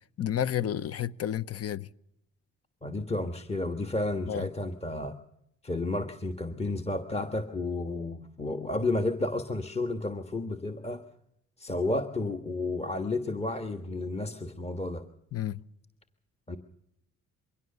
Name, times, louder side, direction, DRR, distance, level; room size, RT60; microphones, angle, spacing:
voice 1, 0.2-1.9 4.3-4.5 15.3-15.6, left 10 dB, 50° left, 0.8 m, -31 dB
voice 2, 2.8-5.2 5.6-11.0 11.6-15.1 16.5-16.6, left 2 dB, 20° left, 1.5 m, -32 dB
23.0 x 17.5 x 6.8 m
cardioid pair, 90°, 30 cm